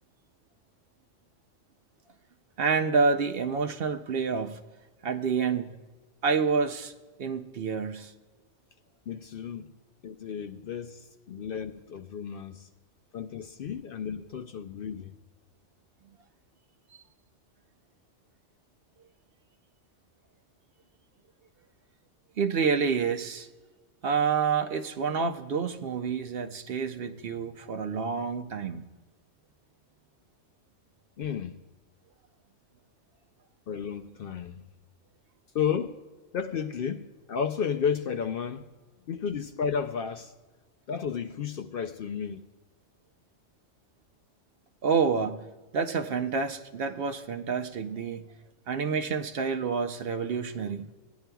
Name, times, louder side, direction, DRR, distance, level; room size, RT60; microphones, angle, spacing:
voice 1, 2.6-4.6 5.0-5.8 6.2-6.9 7.2-8.1 22.4-23.5 24.0-28.8 44.8-45.5 45.7-48.3 48.7-50.9, right 5 dB, 60° right, 0.7 m, -28 dB
voice 2, 9.1-9.7 10.0-12.7 13.1-15.1 31.2-31.6 33.7-34.6 35.5-36.0 36.3-38.7 39.1-40.3 40.9-42.4, left 7 dB, 60° left, 0.6 m, -32 dB
18.0 x 10.5 x 2.3 m
omnidirectional pair, 1.2 m